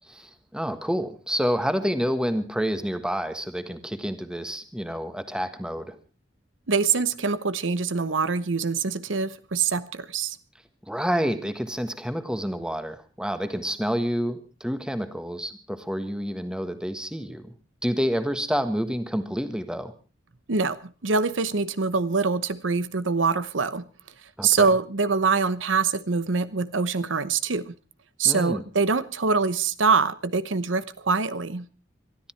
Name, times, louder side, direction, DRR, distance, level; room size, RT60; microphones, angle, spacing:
voice 1, 0.1-5.9 10.9-17.5 17.8-19.9 24.4-24.7 28.2-28.6, equal, 5° right, 1.5 m, -28 dB
voice 2, 6.7-10.4 20.5-23.8 24.4-27.7 28.2-31.7, right 4 dB, 90° right, 1.0 m, -24 dB
23.0 x 13.0 x 4.5 m
head